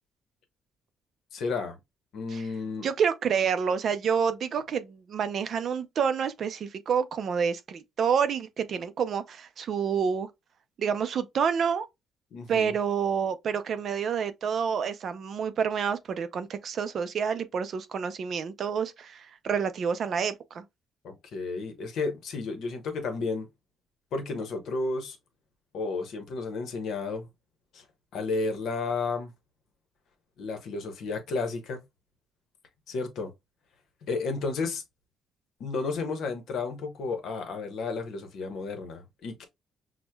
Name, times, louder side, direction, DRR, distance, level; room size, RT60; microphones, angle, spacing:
voice 1, 1.3-1.8 2.1-2.9 12.3-12.8 21.0-23.5 24.1-25.2 25.7-27.3 27.7-27.8 28.1-29.3 30.4-31.8 32.9-33.3 34.0-34.8 35.6-39.4, left 3 dB, 60° left, 1.0 m, -32 dB
voice 2, 2.8-10.3 10.8-11.9 12.5-20.6, right 7 dB, 45° right, 0.4 m, -28 dB
6.1 x 2.1 x 2.2 m
cardioid pair, 170°, 0 cm